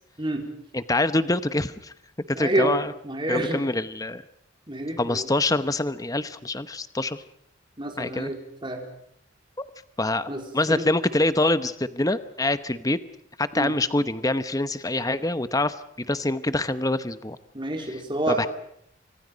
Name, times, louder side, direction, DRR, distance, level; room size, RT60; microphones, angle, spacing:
voice 1, 0.7-1.9 2.3-2.9 3.3-4.2 5.0-7.2 8.0-8.3 9.6-9.7 10.0-10.3 10.5-13.0 13.4-17.4 18.4-18.5, left 2 dB, 20° left, 12 dB, 0.9 m, -25 dB
voice 2, 2.3-2.8 3.0-3.6 4.7-5.3 7.8-8.8 10.3-10.4 10.7-10.9 13.5-13.7 17.5-18.5, right 1 dB, 25° right, 2 dB, 4.1 m, -28 dB
29.5 x 25.0 x 5.2 m, 0.73 s
head